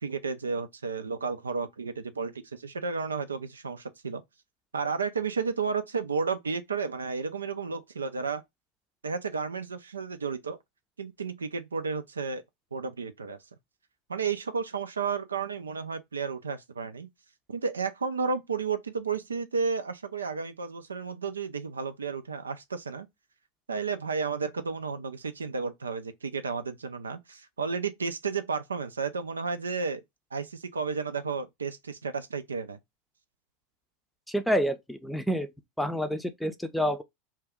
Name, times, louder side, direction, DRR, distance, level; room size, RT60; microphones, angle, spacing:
voice 1, 0.0-4.2 4.7-8.4 9.0-10.6 11.0-12.4 12.7-13.4 14.1-17.1 17.5-23.1 23.7-30.0 30.3-32.8, right 5 dB, 80° right, 0.4 m, -32 dB
voice 2, 34.3-35.5 35.8-37.0, equal, ahead, 0.5 m, -28 dB
2.7 x 2.2 x 3.5 m
figure-of-eight pair, 85°, 0 cm